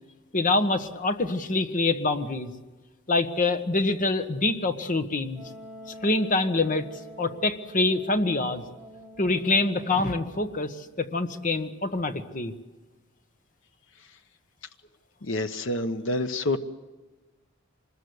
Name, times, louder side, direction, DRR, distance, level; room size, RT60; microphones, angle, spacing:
voice 1, 0.3-2.5 3.1-5.4 6.0-6.8 7.2-8.6 9.2-12.5, left 2 dB, 40° left, 9 dB, 1.4 m, -25 dB
Wind instrument woodwind instrument, 5.3-10.9, equal, 5° right, 5.7 m, -46 dB
voice 2, 15.2-16.6, left 2 dB, 70° left, 9 dB, 1.1 m, -27 dB
25.0 x 21.0 x 8.1 m, 1.2 s
head